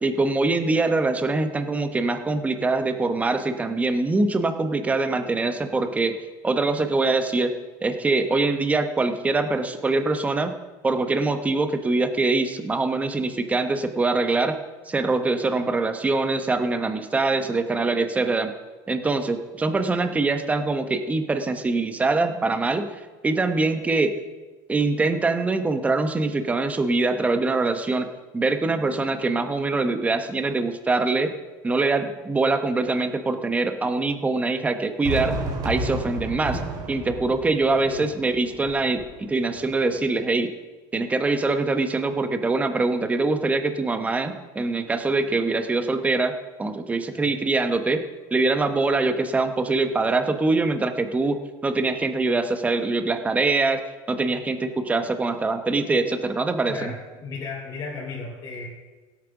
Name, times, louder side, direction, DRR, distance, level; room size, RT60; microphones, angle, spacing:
voice 1, 0.0-6.1 6.4-7.5 7.8-10.5 10.8-14.6 14.9-18.5 18.9-22.9 23.2-24.1 24.7-28.1 28.3-31.3 31.6-35.4 35.6-36.6 36.9-40.5 40.9-46.3 46.6-48.0 48.3-53.8 54.1-56.9, right 3 dB, 15° right, 7 dB, 1.1 m, -23 dB
Fireworks, 35.0-40.1, right 1 dB, 40° right, 3.9 m, -33 dB
voice 2, 56.7-58.7, left 3 dB, 35° left, -4 dB, 3.8 m, -35 dB
16.5 x 9.0 x 6.0 m, 1.3 s
cardioid pair, 140°, 11 cm